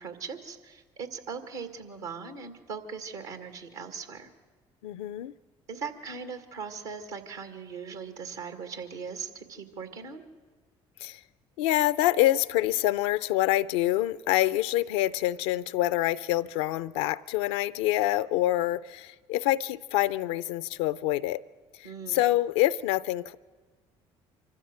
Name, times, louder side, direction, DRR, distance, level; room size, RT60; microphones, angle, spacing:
voice 1, 0.0-4.3 5.7-10.2 21.8-22.2, right 5 dB, 85° right, 2.1 m, -39 dB
voice 2, 4.8-5.3 11.0-11.2 11.6-21.4 21.8-23.3, left 15 dB, 80° left, 0.5 m, -26 dB
25.0 x 14.0 x 7.8 m
hypercardioid pair, 60°, 14 cm